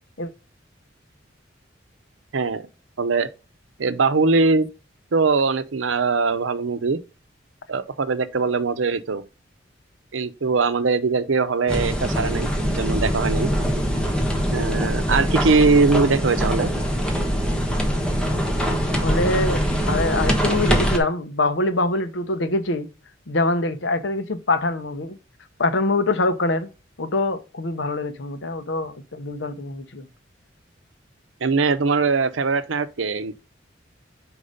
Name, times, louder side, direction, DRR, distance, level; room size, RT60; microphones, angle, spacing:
voice 1, 2.3-2.7 3.0-3.3 3.8-4.7 5.1-7.0 7.7-9.2 10.1-13.5 14.5-16.7 31.4-33.3, right 4 dB, 90° right, 0.7 m, -21 dB
sound 1, 11.7-21.0, equal, 5° left, 1.2 m, -23 dB
voice 2, 19.0-22.9 23.3-25.2 25.6-26.7 27.0-30.1, left 2 dB, 75° left, 0.9 m, -24 dB
5.4 x 4.7 x 5.0 m
head